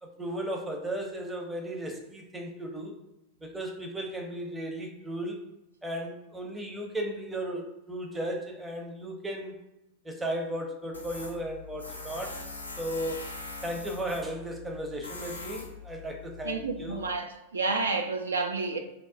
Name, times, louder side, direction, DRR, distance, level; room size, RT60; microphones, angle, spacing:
voice 1, 0.0-3.0 3.4-5.4 5.8-9.5 10.0-12.4 12.8-13.2 13.6-17.0, right 1 dB, 10° right, 0.6 m, -35 dB
Tools, 10.9-17.1, left 3 dB, 85° left, 0.5 m, -42 dB
voice 2, 16.4-18.8, right 3 dB, 70° right, 0.3 m, -30 dB
2.6 x 2.1 x 3.7 m
figure-of-eight pair, 90°, 0 cm